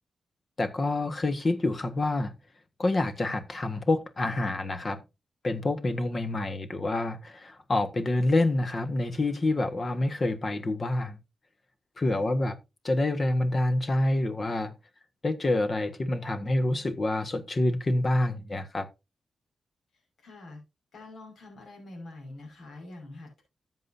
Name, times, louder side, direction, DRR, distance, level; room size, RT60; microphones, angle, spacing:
voice 1, 0.6-2.3 2.8-5.0 5.4-11.2 12.0-12.6 12.8-14.7 15.2-18.9, left 2 dB, 40° left, 1.5 m, -27 dB
voice 2, 20.2-20.6 20.9-23.4, left 2 dB, 75° left, 5.4 m, -45 dB
13.5 x 7.7 x 2.7 m
cardioid pair, 65°, 0 cm